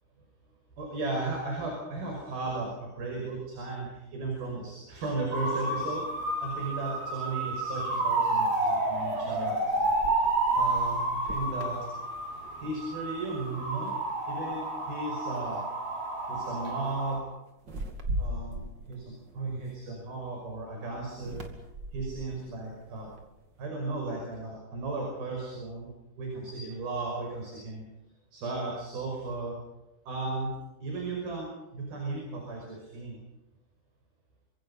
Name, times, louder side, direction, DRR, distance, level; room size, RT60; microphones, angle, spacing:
voice 1, 0.8-9.9 10.5-11.8 12.6-13.9 14.3-15.6 16.3-17.2 18.2-21.4 21.9-23.1 23.6-25.9 26.2-27.8 28.3-29.6 30.1-30.5 30.8-33.2, right 3 dB, 70° right, 0 dB, 7.5 m, -35 dB
sound 1, 5.3-17.2, right 2 dB, 90° right, 7.8 m, -30 dB
sound 2, 9.1-12.7 13.1-13.4 13.8-14.5 15.4-15.6 15.9-16.2 17.6-20.2 21.1-23.6, right 1 dB, 35° right, 2.4 m, -40 dB
29.0 x 25.5 x 5.7 m, 0.95 s
omnidirectional pair, 4.5 m